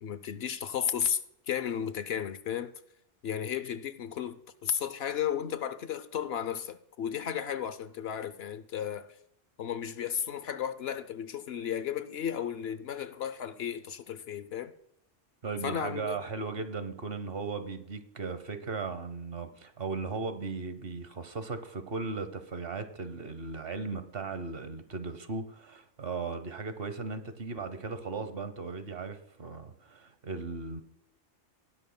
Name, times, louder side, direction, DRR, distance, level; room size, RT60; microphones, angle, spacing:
voice 1, 0.0-1.2 1.5-2.7 3.2-9.1 9.6-14.7 15.6-16.2, left 9 dB, 65° left, 0.9 m, -34 dB
voice 2, 15.4-30.8, right 4 dB, 55° right, 1.1 m, -37 dB
19.5 x 10.5 x 2.2 m
omnidirectional pair, 1.2 m